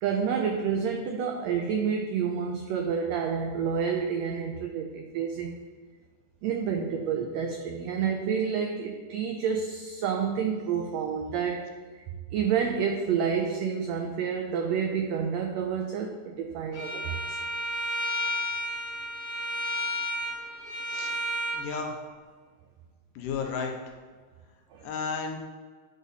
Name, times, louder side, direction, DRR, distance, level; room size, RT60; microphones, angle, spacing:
voice 1, 0.0-5.6 6.4-11.7 12.3-17.4 24.7-24.9, right 7 dB, 90° right, 3 dB, 1.5 m, -29 dB
Bowed string instrument, 16.7-21.6, equal, 40° left, 2.1 m, -32 dB
voice 2, 21.5-21.9 23.2-23.8 24.8-25.4, left 5 dB, 85° left, 3 dB, 2.4 m, -32 dB
9.8 x 4.0 x 4.1 m, 1.5 s
omnidirectional pair, 3.7 m